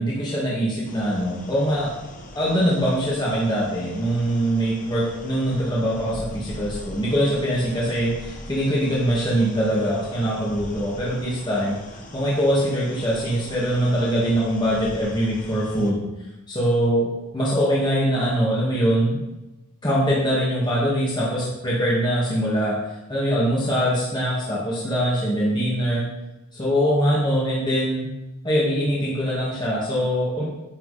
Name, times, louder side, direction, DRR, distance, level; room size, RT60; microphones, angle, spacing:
voice 1, 0.0-1.9 2.3-16.0 16.5-19.2 19.8-22.8 23.1-26.1 26.5-28.1 28.4-30.4, equal, 20° left, -7 dB, 2.2 m, -23 dB
sound 1, 0.8-15.9, left 1 dB, 35° left, 1.5 m, -41 dB
10.5 x 9.0 x 4.3 m, 1.0 s
head